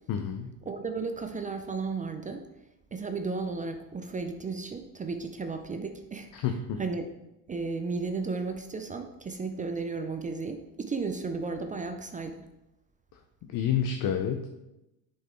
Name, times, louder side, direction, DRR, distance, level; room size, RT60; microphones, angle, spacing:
voice 1, 0.1-0.5 6.3-6.8 13.5-14.5, left 8 dB, 45° left, 5 dB, 0.7 m, -29 dB
voice 2, 0.6-2.5 2.9-6.5 6.8-7.1 7.5-12.5, right 4 dB, 20° right, 7 dB, 0.4 m, -34 dB
7.8 x 4.6 x 4.4 m, 0.94 s
supercardioid pair, 100°, 44 cm